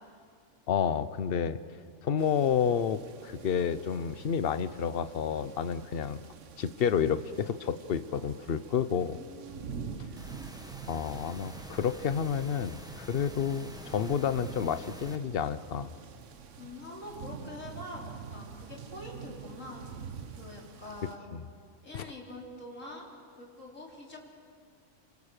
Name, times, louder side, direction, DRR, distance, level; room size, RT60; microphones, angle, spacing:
voice 1, 0.7-1.6 2.0-6.2 6.6-9.2 10.9-15.9 21.3-21.4 21.9-22.0, left 7 dB, 50° left, 13 dB, 1.0 m, -30 dB
sound 1, 2.2-21.2, right 6 dB, 65° right, 1.4 m, -47 dB
voice 2, 8.8-9.8 16.6-19.8 20.4-21.3 21.8-23.0 23.4-24.2, left 1 dB, 70° left, -1 dB, 5.0 m, -45 dB
sound 2, 10.2-15.2, right 1 dB, 5° right, 1.5 m, -47 dB
27.5 x 25.5 x 6.7 m, 2.4 s
omnidirectional pair, 1.4 m